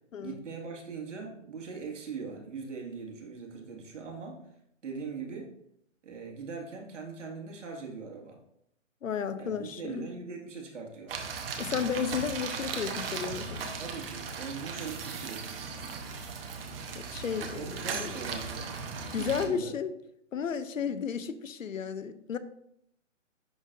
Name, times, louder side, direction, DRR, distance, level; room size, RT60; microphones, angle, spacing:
voice 1, 0.2-4.4 4.8-5.5 6.0-8.4 9.4-11.1 13.8-16.0 17.5-18.8 19.2-19.8, right 5 dB, 70° right, 2.0 m, -41 dB
voice 2, 9.0-10.1 11.6-13.7 17.0-18.1 19.1-19.9 20.3-22.4, left 7 dB, 90° left, 0.7 m, -33 dB
sound 1, 11.1-19.5, right 5 dB, 50° right, 1.1 m, -37 dB
10.5 x 4.0 x 2.6 m
hypercardioid pair, 145°, 38 cm